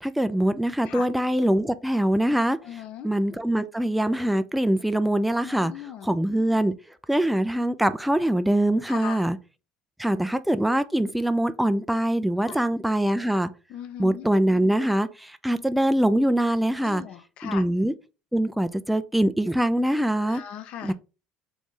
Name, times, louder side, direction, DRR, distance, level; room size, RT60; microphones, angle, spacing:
voice 1, 0.0-5.7 6.0-6.7 7.1-9.4 10.0-13.5 14.0-17.0 17.4-17.9 18.3-20.4 20.8-20.9, right 1 dB, 5° right, 0.3 m, -23 dB
voice 2, 2.6-3.1 5.4-6.1 8.9-9.3 12.5-12.6 13.7-14.3 16.7-17.6 20.3-20.9, left 9 dB, 60° left, 0.6 m, -38 dB
3.1 x 2.5 x 3.6 m
supercardioid pair, 85°, 2 cm